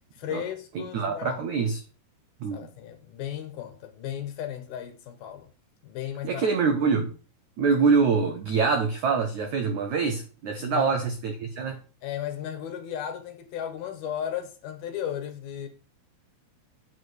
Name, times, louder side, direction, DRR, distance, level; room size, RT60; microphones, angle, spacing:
voice 1, 0.1-1.4 2.5-5.5 5.8-6.5 10.6-10.9 12.0-15.7, left 10 dB, 65° left, 2.8 m, -35 dB
voice 2, 0.8-1.8 2.4-2.7 6.2-7.1 7.6-11.8, right 5 dB, 75° right, 1.7 m, -25 dB
9.6 x 4.9 x 7.9 m
omnidirectional pair, 5.1 m